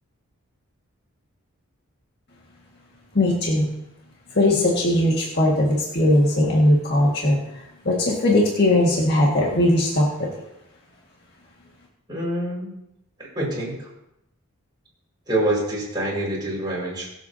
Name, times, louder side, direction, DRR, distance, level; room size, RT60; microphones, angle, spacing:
voice 1, 3.2-3.7 4.4-7.4 7.9-10.3, left 1 dB, 45° left, -3 dB, 1.8 m, -19 dB
voice 2, 12.1-12.7 13.2-13.9 15.3-17.1, right 1 dB, 20° right, -5 dB, 5.3 m, -26 dB
24.5 x 8.2 x 2.8 m, 0.84 s
head